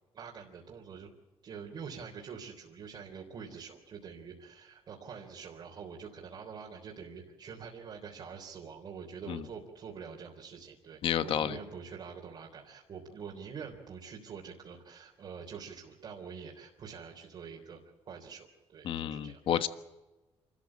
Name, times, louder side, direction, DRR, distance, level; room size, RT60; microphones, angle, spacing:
voice 1, 0.1-1.1 1.4-17.8 18.1-19.4, right 6 dB, 45° right, -2 dB, 3.6 m, -46 dB
voice 2, 11.0-11.6 18.8-19.7, left 9 dB, 55° left, 11 dB, 1.3 m, -30 dB
28.5 x 14.0 x 8.6 m, 1.1 s
cardioid pair, 155°, 11 cm